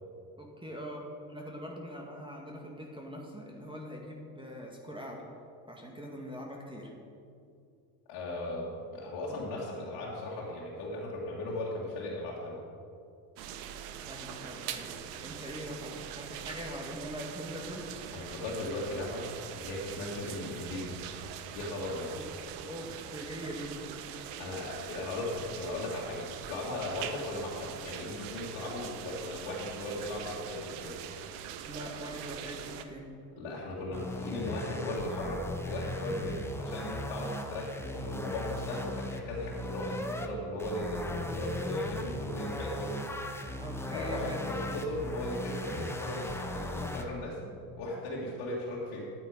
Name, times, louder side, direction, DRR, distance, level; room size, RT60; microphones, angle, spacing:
voice 1, 0.4-5.2 5.7-6.9 14.1-18.3 22.1-22.3 22.6-23.8 31.7-33.1 43.6-45.0, equal, 10° right, -1 dB, 1.9 m, -42 dB
voice 2, 8.1-12.6 18.1-21.0 21.5-22.2 24.4-31.0 33.4-43.0 43.9-49.1, left 1 dB, 75° left, -6 dB, 2.1 m, -37 dB
sound 1, 13.4-32.8, right 9 dB, 80° right, 0.9 m, -43 dB
sound 2, 33.9-40.3 40.6-47.0, left 1 dB, 5° left, 1.0 m, -38 dB
10.5 x 8.4 x 5.1 m, 2.5 s
hypercardioid pair, 75°, 47 cm